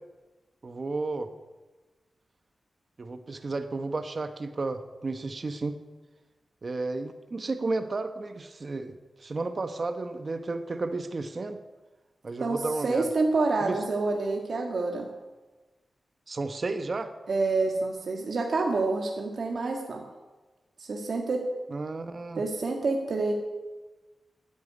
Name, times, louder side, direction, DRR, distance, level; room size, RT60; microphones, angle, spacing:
voice 1, 0.6-1.3 3.0-5.8 6.6-11.6 12.2-13.1 13.6-13.8 16.3-17.1 21.7-22.4, right 3 dB, 45° right, 8 dB, 1.0 m, -32 dB
voice 2, 12.8-15.1 17.3-20.0 20.8-21.4 22.4-23.3, right 3 dB, 65° right, 1 dB, 1.9 m, -27 dB
13.5 x 9.5 x 9.8 m, 1.2 s
wide cardioid pair, 100°, 0 cm